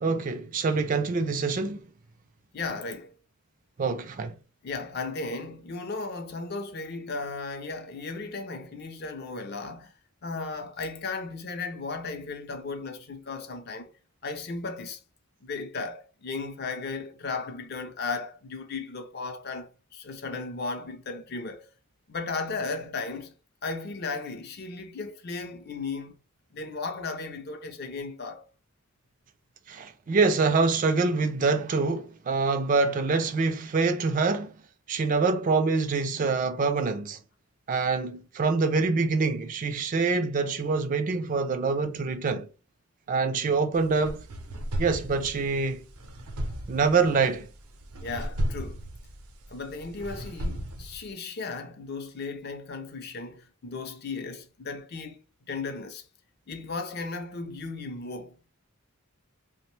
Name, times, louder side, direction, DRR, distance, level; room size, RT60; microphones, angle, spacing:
voice 1, 0.0-1.8 3.8-4.3 29.7-34.5 34.9-37.2 37.7-42.5 43.1-44.3 44.8-45.9 46.7-47.5, right 4 dB, 35° right, 0.3 m, -25 dB
voice 2, 2.5-3.2 4.6-9.9 10.2-13.9 14.2-15.0 15.4-21.7 22.1-23.3 23.6-26.2 26.5-28.5 48.0-48.8 49.5-55.2 55.5-56.1 56.5-58.4, left 4 dB, 45° left, 0.5 m, -35 dB
sound 1, 43.7-51.1, equal, 85° right, 0.6 m, -35 dB
2.9 x 2.1 x 3.1 m
head